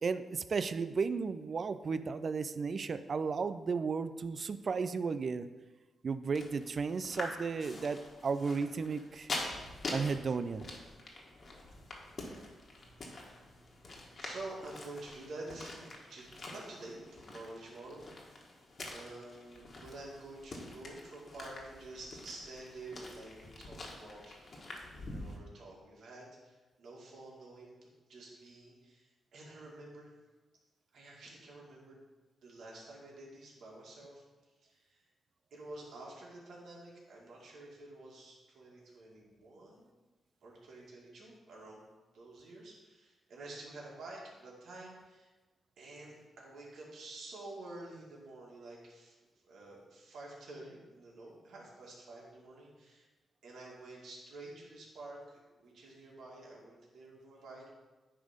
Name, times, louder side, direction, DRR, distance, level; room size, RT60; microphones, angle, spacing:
voice 1, 0.0-5.5 6.0-9.3 9.9-10.6, right 5 dB, 50° right, 12 dB, 0.4 m, -34 dB
sound 1, 6.4-25.4, left 2 dB, 50° left, 1.6 m, -46 dB
voice 2, 12.7-18.6 18.9-30.1 30.9-32.0 32.4-34.2 34.6-35.0 35.5-39.9 40.4-41.8 42.1-45.3 45.8-49.1 49.5-53.1 53.4-57.7, right 2 dB, 70° right, -4 dB, 2.1 m, -49 dB
10.0 x 3.5 x 5.2 m, 1.2 s
cardioid pair, 70°, 0 cm